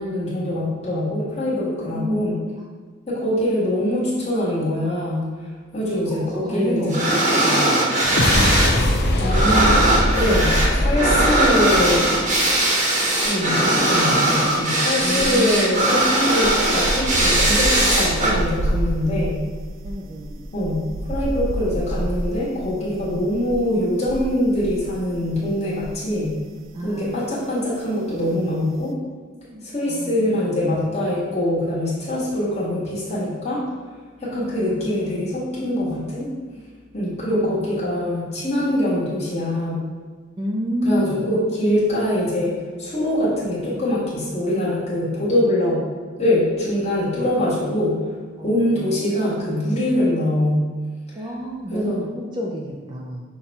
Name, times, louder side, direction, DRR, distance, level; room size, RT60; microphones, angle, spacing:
voice 1, 0.0-2.4 3.1-5.2 5.7-7.1 8.7-9.8 10.1-12.2 13.2-19.4 20.5-26.3 26.8-29.0 29.6-33.6 34.2-36.3 36.9-39.8 40.8-42.5 42.8-45.8 46.2-48.0 48.4-50.7 51.7-52.1, left 1 dB, 35° left, -7 dB, 1.3 m, -23 dB
voice 2, 1.8-2.4 5.9-8.2 11.1-11.2 15.0-15.6 19.8-20.5 26.7-27.2 29.3-30.3 34.7-35.3 37.3-37.8 40.4-41.2 48.4-49.4 51.1-53.2, equal, 25° right, -2 dB, 0.4 m, -30 dB
sound 1, 6.9-8.8 9.0-18.3, right 1 dB, 40° right, 0.9 m, -19 dB
sound 2, 8.0-12.6, left 1 dB, 55° left, 0.5 m, -21 dB
sound 3, 12.1-12.6 12.8-26.4 26.6-26.9, right 1 dB, 90° right, 0.4 m, -29 dB
5.7 x 2.2 x 4.1 m, 1.5 s
head